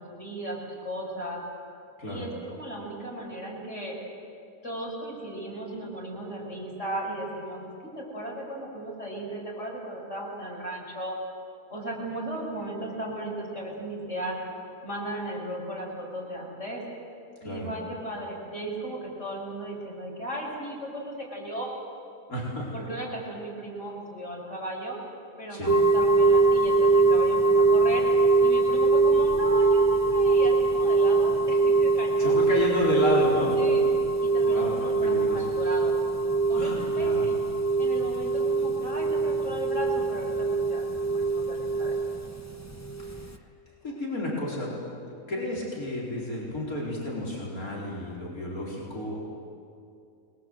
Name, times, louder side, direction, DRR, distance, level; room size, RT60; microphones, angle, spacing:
voice 1, 0.0-1.4 2.0-4.0 4.6-11.2 11.7-14.4 14.8-16.8 17.4-21.7 22.7-25.0 25.4-28.1 28.4-32.4 33.6-33.8 34.2-35.9 36.5-37.3 37.8-42.0, right 1 dB, 55° left, -3 dB, 6.2 m, -36 dB
voice 2, 22.3-22.7 25.5-25.8 32.2-33.6 34.4-34.8 35.0-35.5 36.5-37.3 43.0-43.3 43.8-44.7 45.1-49.3, left 1 dB, 80° left, -5 dB, 5.0 m, -31 dB
sound 1, 25.6-43.4, right 3 dB, 15° left, 0.8 m, -23 dB
28.5 x 21.5 x 7.9 m, 2.5 s
omnidirectional pair, 1.5 m